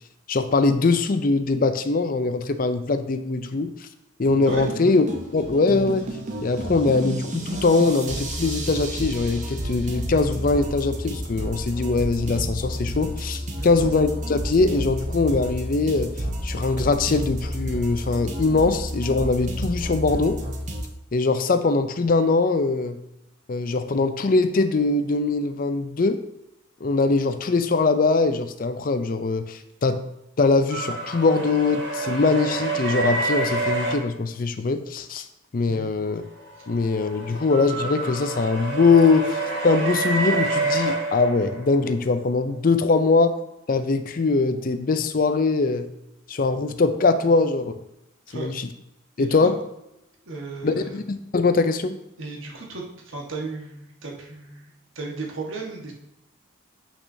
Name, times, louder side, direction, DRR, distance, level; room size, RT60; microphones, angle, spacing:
voice 1, 0.3-3.9 4.2-5.1 5.3-6.1 6.4-16.1 16.4-20.4 21.1-23.0 23.5-26.2 26.8-30.0 30.4-35.3 35.5-36.2 36.7-43.4 43.7-45.9 46.3-47.7 48.3-48.7 49.2-49.6 50.6-52.0, left 3 dB, 45° left, 10 dB, 0.5 m, -22 dB
sound 1, 4.3-20.9, equal, 35° right, 0.9 m, -31 dB
sound 2, 30.7-34.0 36.4-41.9, right 3 dB, 55° right, 1.2 m, -28 dB
voice 2, 49.2-49.5 50.3-51.0 52.2-55.9, right 3 dB, 80° right, -1 dB, 1.4 m, -35 dB
8.2 x 6.0 x 2.7 m, 0.85 s
head